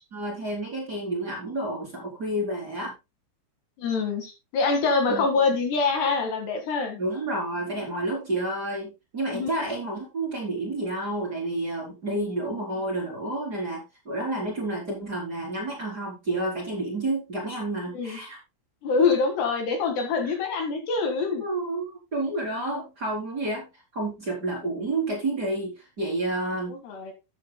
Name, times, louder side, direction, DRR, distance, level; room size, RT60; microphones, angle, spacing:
voice 1, 0.1-2.9 5.1-5.4 7.0-18.4 21.4-21.8 22.1-23.7 23.9-26.7, right 2 dB, 25° right, -3 dB, 3.2 m, -30 dB
voice 2, 3.8-7.0 9.3-9.5 12.1-12.3 14.4-14.5 17.9-18.2 18.8-21.4 26.7-27.1, left 4 dB, 65° left, 5 dB, 3.6 m, -25 dB
13.0 x 10.0 x 2.2 m, 0.24 s
omnidirectional pair, 5.6 m